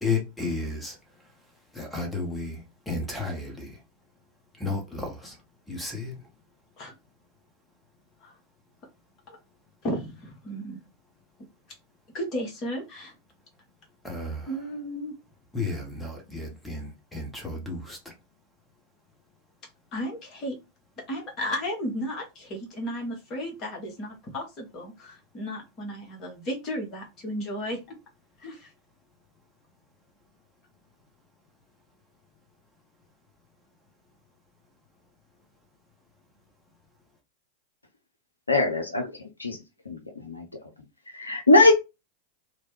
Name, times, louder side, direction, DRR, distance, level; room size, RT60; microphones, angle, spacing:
voice 1, 0.0-1.3 1.7-3.8 4.6-5.4 5.7-6.3 14.0-14.6 15.5-18.2, left 3 dB, 5° left, 0.9 m, -33 dB
voice 2, 9.8-10.8 12.1-13.1 14.5-15.1 19.9-20.5 21.1-27.8 28.4-28.7, equal, 35° left, 1.2 m, -34 dB
voice 3, 38.5-39.1 39.4-39.6 39.9-40.4 41.1-41.7, left 2 dB, 80° left, 0.5 m, -21 dB
3.0 x 2.1 x 3.1 m
figure-of-eight pair, 90°, 0 cm